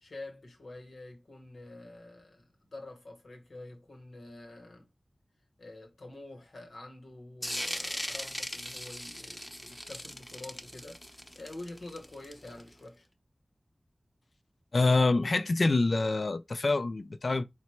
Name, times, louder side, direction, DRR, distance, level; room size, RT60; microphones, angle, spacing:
voice 1, 0.0-4.9 5.6-13.1, left 2 dB, 90° left, 1.1 m, -47 dB
sound 1, 7.4-12.7, equal, 15° left, 0.8 m, -39 dB
voice 2, 14.7-17.4, left 3 dB, 65° left, 0.4 m, -26 dB
4.0 x 2.1 x 4.4 m
wide cardioid pair, 45°, 0 cm